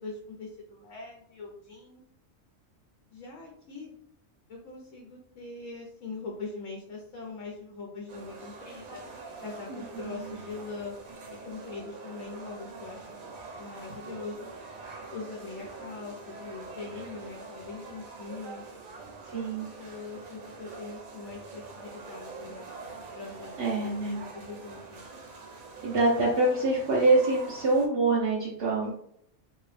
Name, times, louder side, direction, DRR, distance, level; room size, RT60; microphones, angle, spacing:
voice 1, 0.0-2.0 3.1-3.9 4.5-9.0 9.4-10.9 11.3-13.1 13.6-14.5 15.1-18.6 19.5-22.7 23.1-25.1 28.8-28.9, left 4 dB, 70° left, -1 dB, 1.0 m, -42 dB
sound 1, 8.1-27.9, right 3 dB, 90° right, 1.2 m, -44 dB
voice 2, 9.7-10.4 19.3-19.7 23.6-24.2 25.8-28.9, right 2 dB, 55° right, -6 dB, 0.9 m, -25 dB
2.9 x 2.9 x 3.2 m, 0.69 s
omnidirectional pair, 1.4 m